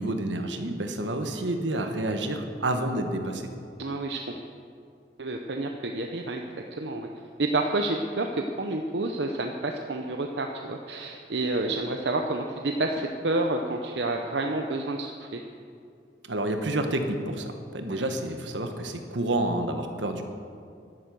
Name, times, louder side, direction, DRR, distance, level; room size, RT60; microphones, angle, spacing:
voice 1, 0.0-3.5 16.2-20.2, right 1 dB, 85° right, 6 dB, 1.3 m, -29 dB
voice 2, 3.8-4.2 5.2-6.4 6.7-7.1 7.4-15.4 17.9-18.0, right 2 dB, 70° right, 3 dB, 0.8 m, -29 dB
11.5 x 11.5 x 7.0 m, 2.4 s
head